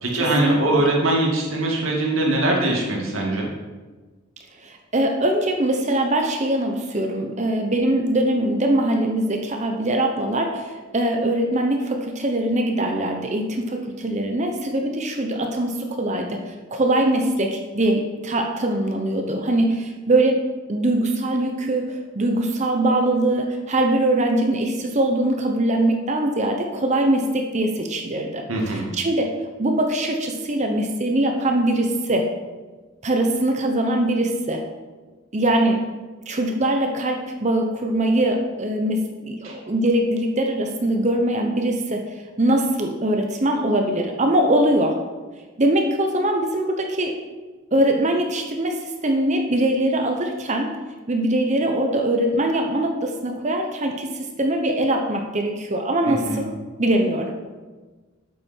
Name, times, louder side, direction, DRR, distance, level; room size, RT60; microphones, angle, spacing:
voice 1, 0.0-3.5 28.5-28.9 39.4-39.6 56.1-56.4, right 2 dB, 70° right, -1 dB, 2.3 m, -22 dB
voice 2, 4.6-20.4 20.7-28.4 28.9-29.3 29.6-32.3 33.0-34.6 35.3-35.8 36.3-45.0 45.6-47.1 47.7-50.7 51.1-56.5 56.8-57.3, right 1 dB, 35° right, 3 dB, 0.8 m, -22 dB
8.5 x 8.4 x 4.5 m, 1.3 s
head